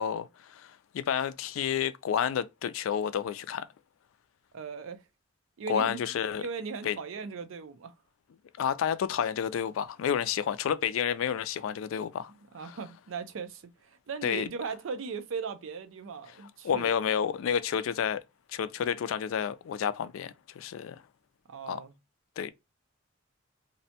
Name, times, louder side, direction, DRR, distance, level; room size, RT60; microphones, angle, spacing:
voice 1, 0.0-3.7 5.7-6.4 6.8-7.0 8.6-12.3 12.6-12.8 14.2-14.5 16.6-18.2 18.5-21.0 21.7-21.8 22.4-22.5, left 8 dB, 80° left, 0.3 m, -30 dB
voice 2, 4.5-5.0 5.6-6.0 6.3-7.9 12.5-16.9 21.5-21.9, right 5 dB, 75° right, 0.4 m, -38 dB
2.6 x 2.1 x 2.7 m
head